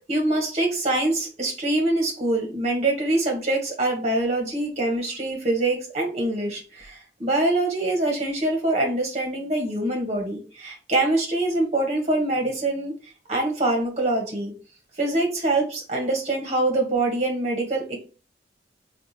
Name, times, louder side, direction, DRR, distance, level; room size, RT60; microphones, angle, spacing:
voice 1, 0.1-12.9 13.3-14.5 15.0-17.8, right 2 dB, 40° right, 0 dB, 1.4 m, -24 dB
3.4 x 2.5 x 4.1 m, 0.35 s
head